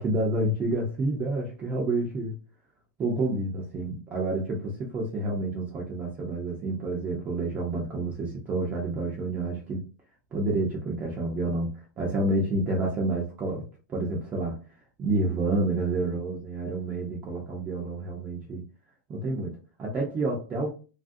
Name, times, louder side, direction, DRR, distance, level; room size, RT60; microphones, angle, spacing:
voice 1, 0.0-2.3 3.0-9.9 10.3-11.7 12.0-13.6 13.9-14.6 15.0-18.6 19.1-20.7, right 2 dB, 15° right, 0.5 m, -29 dB
3.1 x 2.5 x 2.5 m
supercardioid pair, 165°, 10 cm